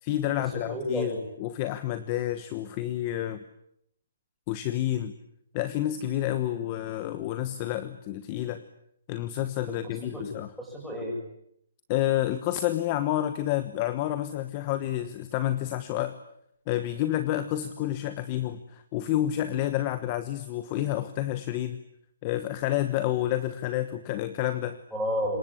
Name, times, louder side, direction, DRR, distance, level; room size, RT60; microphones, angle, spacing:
voice 1, 0.0-3.4 4.5-5.1 5.5-8.6 9.1-10.5 11.9-16.2 16.7-21.8 22.2-24.8, left 13 dB, 20° left, 11 dB, 1.1 m, -29 dB
voice 2, 0.5-1.2 10.1-10.2 10.6-11.2 24.9-25.4, equal, ahead, -3 dB, 7.1 m, -31 dB
26.5 x 22.0 x 9.8 m, 0.75 s
hypercardioid pair, 175°, 0 cm